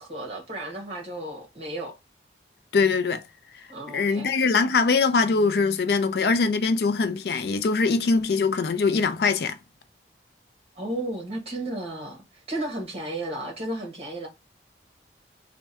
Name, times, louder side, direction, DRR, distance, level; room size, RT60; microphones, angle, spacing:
voice 1, 0.0-2.0 3.7-4.3 10.7-14.3, right 1 dB, 35° right, 1.5 m, -33 dB
voice 2, 2.7-3.2 3.9-9.6, left 4 dB, 60° left, 0.4 m, -22 dB
3.5 x 2.2 x 4.2 m
head